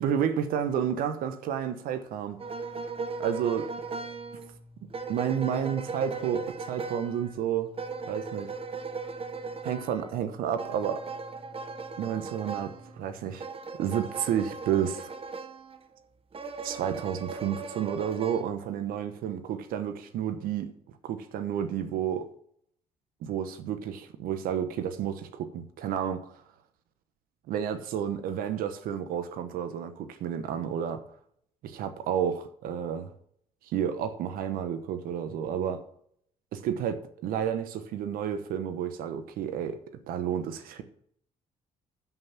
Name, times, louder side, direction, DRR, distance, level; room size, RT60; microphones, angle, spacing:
voice 1, 0.0-2.4 3.2-4.1 5.1-7.7 8.1-8.5 9.6-11.0 12.0-13.5 13.8-15.1 16.6-20.7 21.0-22.3 23.2-26.4 27.5-31.0 31.7-33.1 33.6-35.8 36.5-39.8 40.1-40.8, right 9 dB, 75° right, 1.1 m, -31 dB
sound 1, 2.4-15.8 16.3-18.4, right 4 dB, 40° right, 1.3 m, -38 dB
12.5 x 5.8 x 5.9 m
supercardioid pair, 65°, 15 cm